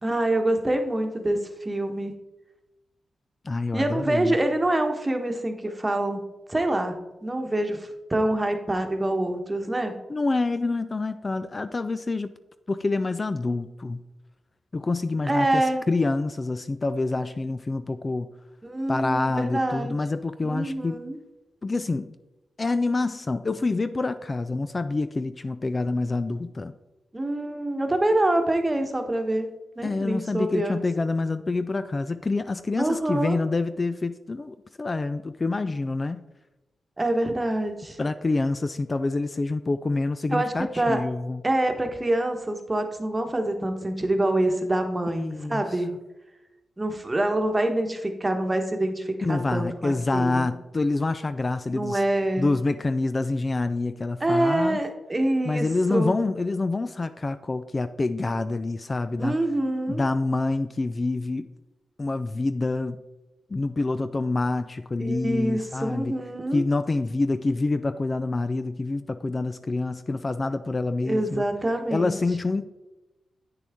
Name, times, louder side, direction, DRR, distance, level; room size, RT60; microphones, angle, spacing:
voice 1, 0.0-2.1 3.7-6.2 6.5-6.9 7.2-10.0 15.3-15.8 18.6-19.9 20.4-21.2 27.1-29.5 29.8-30.8 32.8-33.4 37.0-38.0 40.3-41.0 41.4-45.9 46.8-50.5 51.7-52.5 54.2-56.1 59.2-60.0 65.0-66.6 71.1-72.2, right 1 dB, 25° right, 1.2 m, -26 dB
voice 2, 3.4-4.4 10.1-12.3 12.7-14.0 14.7-18.3 18.9-21.0 21.6-22.1 22.6-26.8 29.8-36.2 38.0-41.4 45.1-45.6 49.2-52.0 52.4-54.8 55.4-59.4 59.9-61.5 62.0-63.0 63.5-66.2 66.5-71.4 71.9-72.7, left 3 dB, 35° left, 0.4 m, -27 dB
8.5 x 6.4 x 3.6 m
cardioid pair, 65°, 0 cm